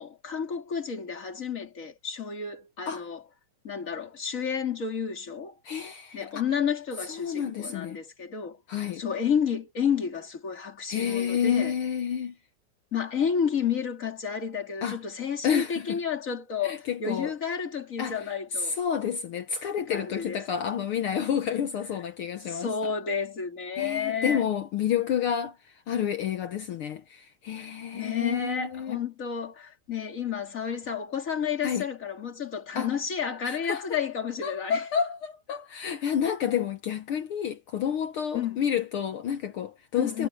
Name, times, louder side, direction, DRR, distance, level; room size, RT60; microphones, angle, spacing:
voice 1, 0.0-3.2 3.6-5.5 6.1-8.6 8.9-11.7 12.9-18.8 19.9-20.4 22.5-24.5 27.6-34.8 35.9-36.0 38.3-38.6 39.9-40.3, left 7 dB, 25° left, 2.8 m, -31 dB
voice 2, 5.6-6.4 7.1-8.0 8.7-9.0 10.9-12.4 14.8-15.0 15.4-16.0 16.6-17.3 18.0-18.2 18.5-22.9 23.7-29.0 31.6-31.9 32.7-32.9 33.4-34.0 34.4-40.3, left 8 dB, 70° left, 1.3 m, -30 dB
omnidirectional pair, 3.5 m